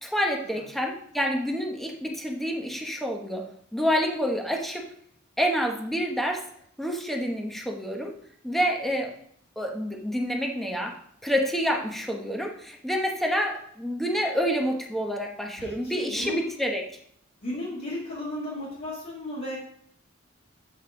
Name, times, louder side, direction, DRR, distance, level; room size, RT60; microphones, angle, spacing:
voice 1, 0.0-4.9 5.4-6.4 6.8-8.1 8.4-9.1 9.6-11.0 11.2-16.9, equal, ahead, 1 dB, 1.0 m, -28 dB
voice 2, 15.6-16.4 17.4-19.6, left 1 dB, 50° left, -10 dB, 2.5 m, -34 dB
7.7 x 5.5 x 3.8 m, 0.65 s
head